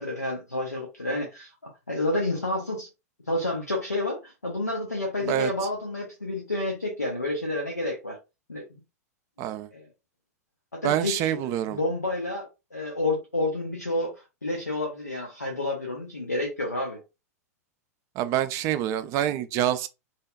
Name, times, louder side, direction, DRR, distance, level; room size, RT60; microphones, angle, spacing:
voice 1, 0.0-2.9 3.3-8.2 8.5-8.8 9.7-9.9 10.7-17.0, left 2 dB, 85° left, 0.6 m, -30 dB
voice 2, 9.4-9.7 10.8-11.8 18.2-19.9, right 11 dB, 35° right, 0.4 m, -26 dB
2.7 x 2.1 x 2.4 m
figure-of-eight pair, 90°, 9 cm